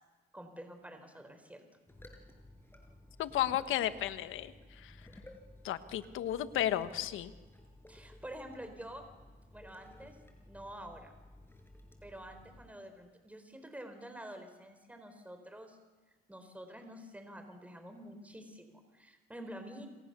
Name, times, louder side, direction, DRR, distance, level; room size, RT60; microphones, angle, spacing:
voice 1, 0.3-1.6 7.9-9.0 9.5-10.2 10.5-11.1 12.0-15.8 16.3-19.9, right 1 dB, 5° right, 7 dB, 4.4 m, -48 dB
sound 1, 1.9-12.7, left 1 dB, 10° left, 5.6 m, -56 dB
voice 2, 3.2-4.5 4.8-4.9 5.6-7.3, left 12 dB, 85° left, 11 dB, 1.4 m, -33 dB
28.0 x 27.0 x 6.9 m, 1.3 s
cardioid pair, 90°, 20 cm